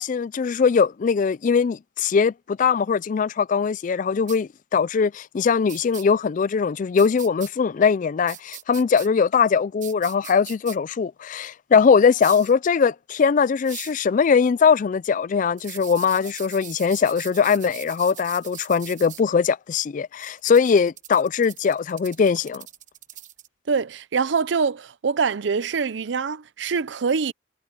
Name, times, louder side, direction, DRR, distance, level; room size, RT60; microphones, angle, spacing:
voice 1, 0.0-22.7, left 6 dB, 45° left, 0.3 m, -21 dB
sound 1, 4.3-4.4 5.7-6.0 7.0-7.5 8.3-9.1 9.8-10.8 12.2-12.5 13.6-14.0 15.6-19.2 20.2-23.5, right 12 dB, 40° right, 1.1 m, -41 dB
voice 2, 23.7-27.3, right 5 dB, 65° right, 0.5 m, -24 dB
head